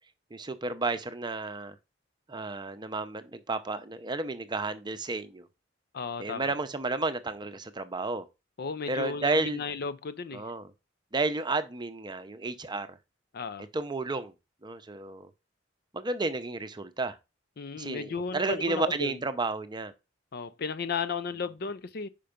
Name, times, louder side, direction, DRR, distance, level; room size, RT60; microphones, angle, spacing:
voice 1, 0.3-1.8 2.3-5.5 6.2-8.3 8.9-9.6 10.3-10.7 11.1-13.0 13.7-14.3 14.6-15.3 15.9-17.2 17.8-19.9, right 3 dB, 25° right, 0.7 m, -32 dB
voice 2, 5.9-6.5 8.6-10.4 13.3-13.7 17.6-19.2 20.3-22.1, left 5 dB, 55° left, 0.5 m, -34 dB
5.7 x 5.2 x 5.1 m
head